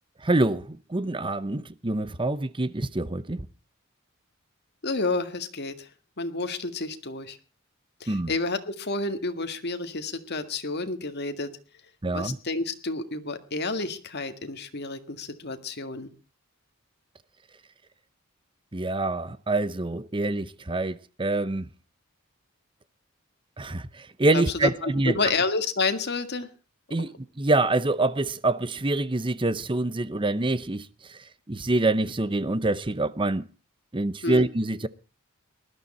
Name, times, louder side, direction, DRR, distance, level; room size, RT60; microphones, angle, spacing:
voice 1, 0.2-3.5 8.1-8.3 12.0-12.4 18.7-21.7 23.6-25.2 26.9-31.2 31.5-33.5 33.9-34.9, right 2 dB, 25° right, 0.8 m, -26 dB
voice 2, 4.8-5.9 6.2-7.4 8.0-11.5 12.1-16.1 24.3-26.5 34.2-34.5, left 3 dB, 50° left, 1.9 m, -30 dB
19.5 x 12.5 x 4.3 m
head